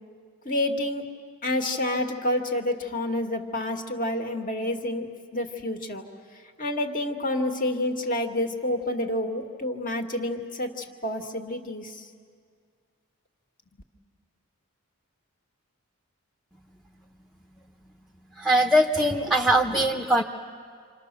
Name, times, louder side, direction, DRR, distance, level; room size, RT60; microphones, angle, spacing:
voice 1, 0.5-1.0 1.4-6.1 6.6-12.1, left 1 dB, 40° left, 4 dB, 2.0 m, -28 dB
voice 2, 18.4-20.2, right 1 dB, ahead, 3 dB, 0.8 m, -21 dB
28.5 x 27.0 x 6.8 m, 2.1 s
head